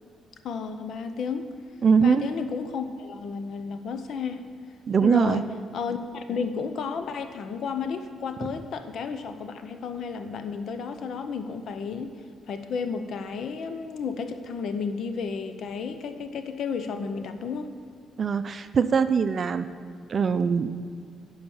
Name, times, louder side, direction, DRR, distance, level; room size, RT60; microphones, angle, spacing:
voice 1, 0.4-1.5 2.0-4.4 5.0-5.5 5.7-12.1 12.5-17.7, left 5 dB, 65° left, 9 dB, 0.7 m, -32 dB
voice 2, 1.8-2.2 4.9-5.4 18.2-19.6 20.1-20.7, right 6 dB, 45° right, 11 dB, 0.5 m, -22 dB
11.0 x 4.9 x 7.1 m, 2.2 s
cardioid pair, 90°, 0 cm